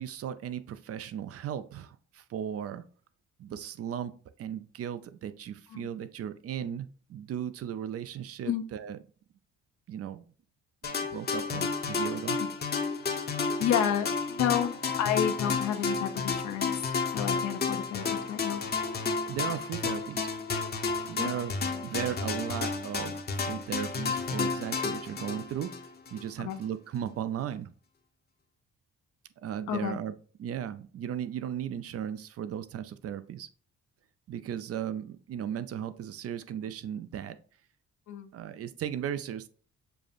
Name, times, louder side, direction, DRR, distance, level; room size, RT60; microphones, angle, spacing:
voice 1, 0.0-2.8 3.4-4.1 4.4-9.0 9.9-10.2 11.0-12.4 19.2-20.3 21.1-21.5 21.8-25.7 26.1-27.7 29.4-30.1 30.4-33.5 34.3-37.4 38.3-39.5, right 9 dB, 50° right, 13 dB, 0.5 m, -36 dB
sound 1, 10.8-26.2, left 4 dB, 35° left, 0.7 m, -31 dB
voice 2, 13.4-16.9 17.1-18.6 21.2-21.3 26.4-26.6 29.7-30.0 38.1-38.3, left 10 dB, 70° left, 7 dB, 0.6 m, -31 dB
6.8 x 2.5 x 2.4 m, 0.41 s
cardioid pair, 90°, 30 cm